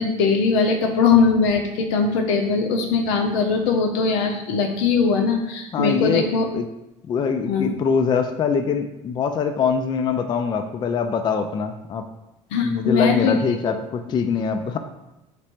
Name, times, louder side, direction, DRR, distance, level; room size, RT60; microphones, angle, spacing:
voice 1, 0.0-6.5 7.5-7.7 12.5-13.4, left 4 dB, 85° left, 3 dB, 0.6 m, -20 dB
voice 2, 5.7-6.3 6.5-6.6 7.0-12.1 12.6-14.8, left 6 dB, 30° left, 6 dB, 0.3 m, -23 dB
3.2 x 2.5 x 4.3 m, 0.93 s
supercardioid pair, 100°, 15 cm